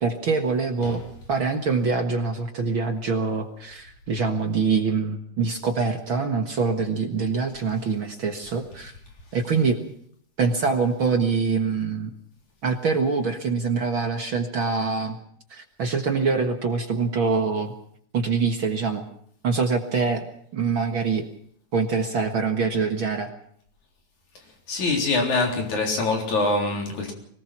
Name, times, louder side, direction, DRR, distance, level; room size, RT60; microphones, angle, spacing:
voice 1, 0.0-1.0 1.3-8.9 9.3-9.8 10.4-12.1 12.6-15.2 15.5-17.7 18.1-19.0 19.4-20.3 20.5-21.3 21.7-23.3, right 4 dB, 45° right, 2.0 m, -24 dB
voice 2, 24.7-27.1, left 3 dB, 70° left, 5.1 m, -24 dB
24.0 x 18.5 x 6.0 m
omnidirectional pair, 3.5 m